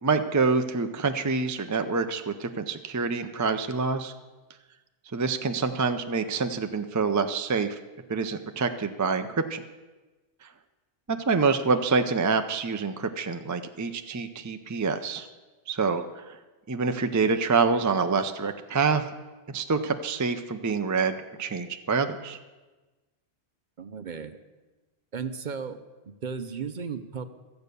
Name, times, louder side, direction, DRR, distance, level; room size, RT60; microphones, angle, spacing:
voice 1, 0.0-4.1 5.1-7.8 8.1-9.6 11.1-15.3 15.7-16.4 16.7-19.0 19.5-22.4, right 4 dB, 25° right, 7 dB, 0.3 m, -26 dB
voice 2, 23.8-24.4 25.1-25.8 26.0-27.3, right 6 dB, 50° right, 10 dB, 0.8 m, -35 dB
14.0 x 8.0 x 6.7 m, 1.2 s
omnidirectional pair, 1.2 m